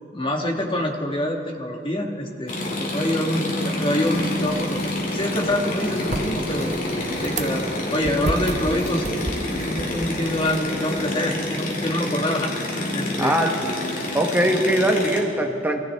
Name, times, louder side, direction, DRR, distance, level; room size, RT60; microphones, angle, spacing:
voice 1, 0.1-6.8 7.2-9.1 9.6-12.5 12.9-13.4, left 1 dB, 30° left, 1 dB, 1.5 m, -26 dB
River Motor Boat Jungle Cruise, 2.5-15.2, left 1 dB, 45° left, 2.4 m, -28 dB
sound 1, 4.1-11.1, right 2 dB, 40° right, 0.8 m, -34 dB
voice 2, 13.2-13.6 14.1-15.8, right 1 dB, 10° right, 3 dB, 1.0 m, -21 dB
21.5 x 15.0 x 3.4 m, 2.6 s
head